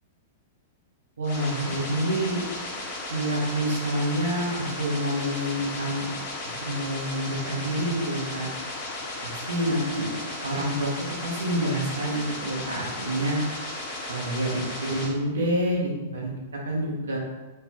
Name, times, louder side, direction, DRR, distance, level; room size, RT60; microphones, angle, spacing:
sound 1, 1.2-15.1, left 2 dB, 45° left, 0.7 m, -35 dB
voice 1, 1.2-2.4 3.1-6.1 6.6-8.5 9.2-10.1 10.4-13.4 14.1-17.2, right 1 dB, 70° right, -2 dB, 0.8 m, -28 dB
3.2 x 2.0 x 3.2 m, 1.2 s
figure-of-eight pair, 100°, 0 cm